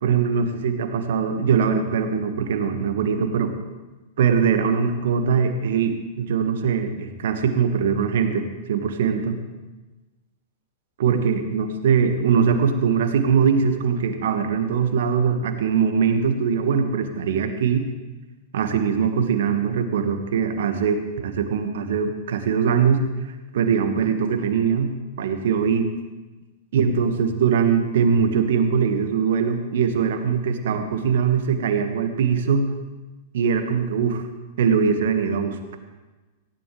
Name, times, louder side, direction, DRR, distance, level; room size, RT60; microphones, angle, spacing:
voice 1, 0.0-3.5 4.2-9.4 11.0-17.9 18.5-23.0 23.5-24.9 25.2-25.9 26.7-32.7 33.3-34.2 34.6-35.8, right 6 dB, 65° right, 7 dB, 1.6 m, -21 dB
18.0 x 16.0 x 3.4 m, 1.2 s
figure-of-eight pair, 100°, 0 cm